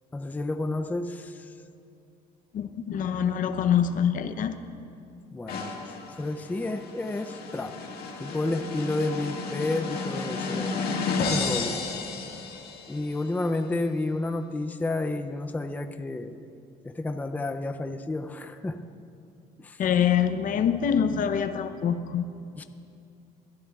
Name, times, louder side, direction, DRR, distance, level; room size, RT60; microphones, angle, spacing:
voice 1, 0.1-1.5 5.3-5.8 6.1-7.8 8.2-10.8 11.2-11.9 12.9-16.5 16.8-18.9 19.6-19.8 22.6-22.7, left 2 dB, 10° left, 8 dB, 0.4 m, -31 dB
voice 2, 2.5-4.6 19.8-22.2, left 8 dB, 55° left, 9 dB, 0.6 m, -25 dB
sound 1, 5.5-13.1, left 4 dB, 70° left, 1.8 m, -32 dB
22.5 x 13.5 x 2.4 m, 2.6 s
cardioid pair, 110°, 17 cm